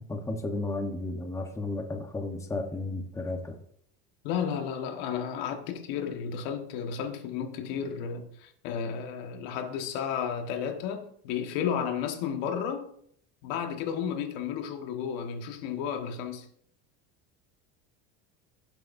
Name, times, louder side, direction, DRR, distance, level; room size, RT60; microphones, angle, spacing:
voice 1, 0.1-3.5, left 2 dB, 10° left, 1.1 m, -33 dB
voice 2, 4.2-12.9 13.4-16.5, left 7 dB, 75° left, 1.6 m, -33 dB
16.5 x 7.7 x 2.7 m
cardioid pair, 145°, 31 cm